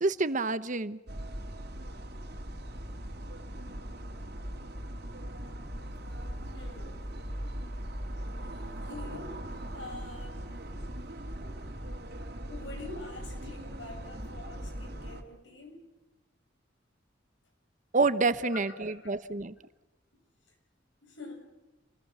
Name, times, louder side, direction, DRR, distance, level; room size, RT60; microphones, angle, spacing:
voice 1, 0.0-1.0 17.9-19.5, right 3 dB, 45° right, 14 dB, 1.0 m, -28 dB
sound 1, 1.1-15.2, right 1 dB, 60° right, 3.1 m, -40 dB
voice 2, 6.4-7.4 8.4-11.0 12.5-15.9 18.4-19.1 20.1-20.2 20.5-20.6 21.0-21.4, left 2 dB, 80° left, 4 dB, 6.8 m, -46 dB
28.5 x 20.5 x 6.9 m, 1.1 s
head